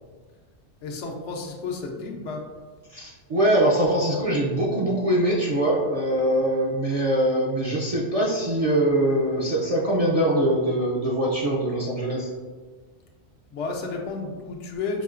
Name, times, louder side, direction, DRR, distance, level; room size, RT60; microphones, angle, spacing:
voice 1, 0.8-2.5 13.5-15.0, left 4 dB, 80° left, 1 dB, 1.0 m, -32 dB
voice 2, 2.9-12.3, right 1 dB, 45° right, -5 dB, 0.5 m, -23 dB
5.6 x 2.7 x 2.5 m, 1.4 s
omnidirectional pair, 1.2 m